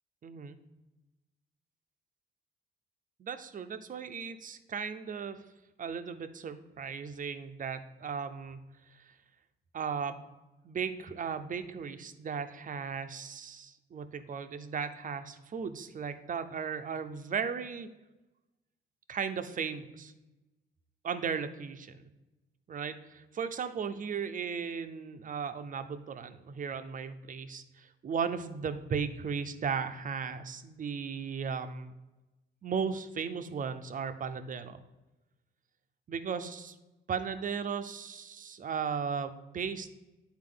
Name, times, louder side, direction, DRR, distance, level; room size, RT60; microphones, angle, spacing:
voice 1, 0.2-0.6 3.2-5.4 5.8-8.6 9.0-9.1 9.7-10.3 10.6-17.9 19.1-20.1 21.0-22.0 22.7-31.9 32.6-34.8 36.1-36.7 37.1-39.9, right 6 dB, 40° right, 9 dB, 0.6 m, -36 dB
9.3 x 4.4 x 3.8 m, 1.0 s
cardioid pair, 90°, 20 cm